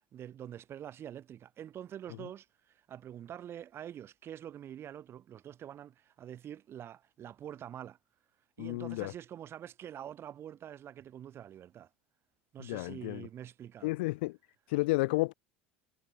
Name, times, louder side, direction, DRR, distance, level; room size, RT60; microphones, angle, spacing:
voice 1, 0.1-8.0 8.6-11.9 12.5-13.9, right 10 dB, 40° right, 5.3 m, -46 dB
voice 2, 8.6-9.1 12.6-13.3 13.8-14.4 14.7-15.3, left 22 dB, 65° left, 1.2 m, -31 dB
figure-of-eight pair, 70°, 6 cm